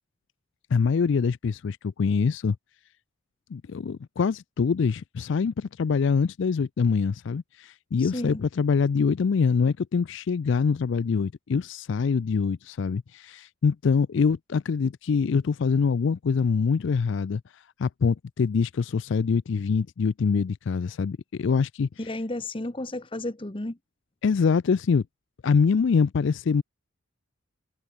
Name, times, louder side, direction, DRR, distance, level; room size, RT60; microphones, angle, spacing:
voice 1, 0.7-2.6 3.5-21.9 24.2-25.0 25.4-26.6, left 5 dB, 60° left, 0.4 m, -24 dB
voice 2, 8.0-8.4 22.0-23.8, left 1 dB, 25° left, 1.0 m, -32 dB
head